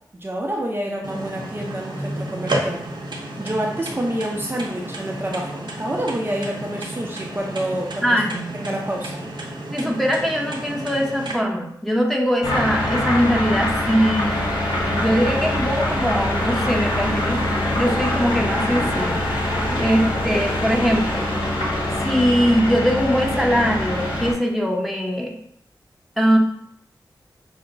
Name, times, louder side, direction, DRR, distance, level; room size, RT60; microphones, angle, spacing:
voice 1, 0.1-2.8 3.4-8.2 8.5-9.2 19.6-19.8, right 1 dB, 25° right, -2 dB, 0.6 m, -28 dB
sound 1, 1.0-11.3, right 1 dB, 70° right, 0.9 m, -32 dB
voice 2, 8.0-8.4 9.7-14.4 15.0-19.2 19.7-21.3 22.0-25.3 26.2-26.4, equal, ahead, -1 dB, 0.8 m, -21 dB
sound 2, 12.4-24.3, left 1 dB, 80° left, 1.2 m, -24 dB
5.5 x 2.1 x 3.9 m, 0.69 s
wide cardioid pair, 70°, 8 cm